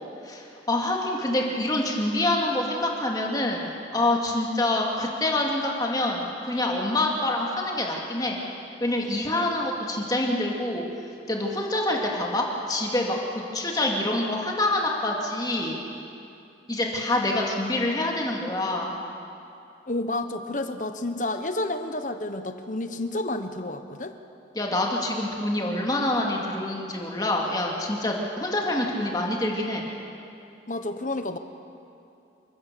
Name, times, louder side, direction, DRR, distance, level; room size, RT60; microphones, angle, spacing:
voice 1, 0.2-8.4 8.8-10.9 11.3-15.8 16.7-19.0 24.5-29.9, left 1 dB, 20° left, -1 dB, 2.4 m, -26 dB
voice 2, 19.9-24.2 30.7-31.4, left 2 dB, 45° left, 8 dB, 1.2 m, -30 dB
28.0 x 16.0 x 6.9 m, 2.6 s
head